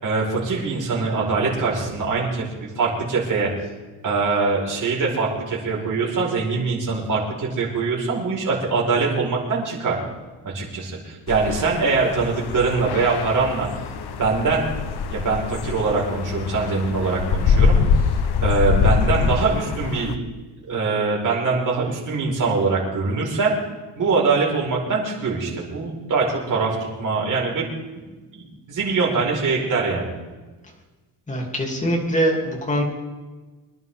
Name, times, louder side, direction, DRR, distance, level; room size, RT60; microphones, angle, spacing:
voice 1, 0.0-3.5 4.0-10.0 10.4-13.7 14.1-14.6 15.1-17.8 18.4-20.1 20.7-23.5 23.9-28.0 28.3-30.1, right 4 dB, 45° right, -3 dB, 5.0 m, -23 dB
sound 1, 11.3-20.1, left 5 dB, 65° left, 1.1 m, -23 dB
voice 2, 31.3-32.8, equal, 15° left, 0 dB, 3.0 m, -23 dB
25.5 x 11.0 x 3.7 m, 1.2 s
cardioid pair, 150°, 42 cm